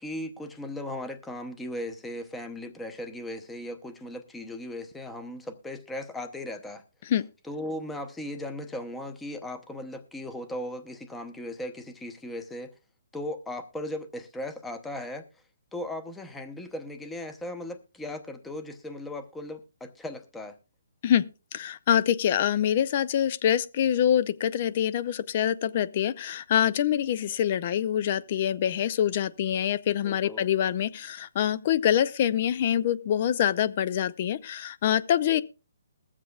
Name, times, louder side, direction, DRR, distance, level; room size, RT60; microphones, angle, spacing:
voice 1, 0.0-6.8 7.4-12.7 13.1-15.2 15.7-20.5 30.0-30.5, left 1 dB, 5° left, 0.8 m, -37 dB
voice 2, 21.5-35.4, left 10 dB, 40° left, 0.5 m, -25 dB
21.0 x 7.4 x 2.3 m
hypercardioid pair, 160°, 0 cm